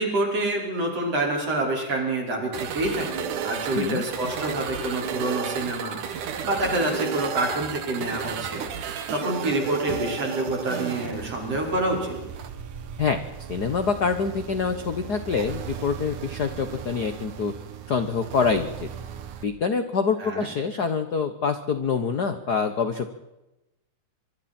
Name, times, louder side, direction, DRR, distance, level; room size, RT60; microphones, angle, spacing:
voice 1, 0.0-12.2 20.2-20.5, right 2 dB, 55° right, 0 dB, 6.1 m, -27 dB
sound 1, 2.5-19.4, right 8 dB, 90° right, 3.1 m, -34 dB
voice 2, 3.7-4.0 13.0-13.2 13.5-17.5 17.9-18.9 19.4-23.1, left 5 dB, 55° left, 9 dB, 1.1 m, -26 dB
25.0 x 24.5 x 4.4 m, 0.95 s
omnidirectional pair, 3.4 m